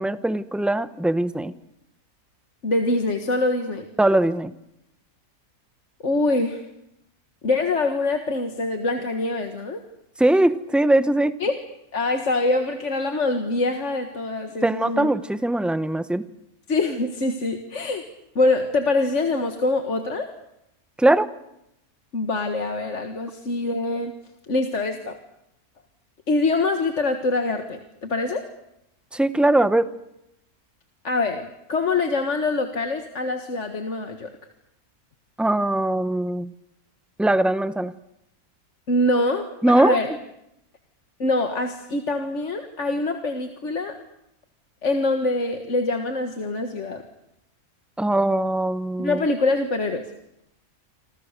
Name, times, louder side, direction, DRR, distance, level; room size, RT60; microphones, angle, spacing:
voice 1, 0.0-1.5 4.0-4.5 10.2-11.3 14.6-16.2 21.0-21.3 29.1-29.9 35.4-36.5 37.2-37.9 39.6-40.0 48.0-49.2, right 1 dB, ahead, 12 dB, 0.6 m, -21 dB
voice 2, 2.6-3.9 6.0-6.6 7.4-9.8 11.4-11.6 11.9-15.1 16.7-18.0 18.4-20.3 22.1-24.2 24.5-25.2 26.3-28.5 31.0-34.3 38.9-39.5 39.8-40.1 41.2-44.0 44.8-47.1 49.0-50.1, left 2 dB, 55° left, 5 dB, 1.9 m, -24 dB
28.0 x 26.0 x 6.7 m, 0.82 s
omnidirectional pair, 1.6 m